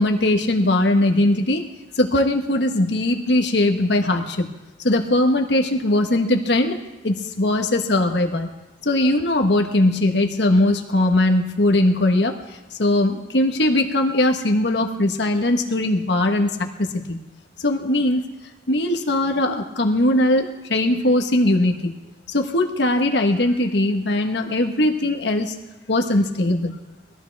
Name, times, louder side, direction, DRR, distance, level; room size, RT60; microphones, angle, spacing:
voice 1, 0.0-1.7 2.0-4.5 4.8-6.8 7.0-8.5 8.8-12.3 12.8-17.2 17.6-18.2 18.7-21.9 22.3-25.5 25.9-26.7, left 1 dB, 75° left, 4 dB, 1.3 m, -20 dB
20.5 x 14.5 x 3.5 m, 1.0 s
head